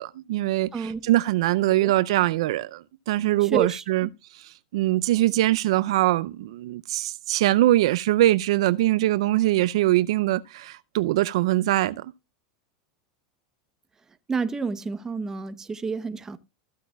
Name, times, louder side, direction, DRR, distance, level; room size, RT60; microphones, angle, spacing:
voice 1, 0.0-12.1, right 15 dB, 75° right, 0.4 m, -23 dB
voice 2, 3.4-4.1 14.3-16.4, right 5 dB, 20° right, 0.8 m, -29 dB
14.5 x 8.3 x 2.3 m
supercardioid pair, 115°, 3 cm